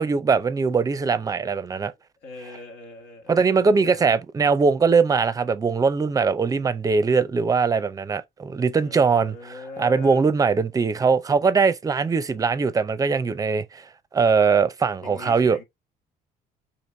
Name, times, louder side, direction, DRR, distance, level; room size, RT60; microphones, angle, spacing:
voice 1, 0.0-1.9 3.3-9.5 9.8-13.8 14.1-15.6, right 5 dB, 20° right, 0.5 m, -21 dB
voice 2, 2.2-4.1 8.8-10.2 15.0-15.6, left 2 dB, 80° left, 1.6 m, -40 dB
4.4 x 2.9 x 3.2 m
cardioid pair, 110°, 17 cm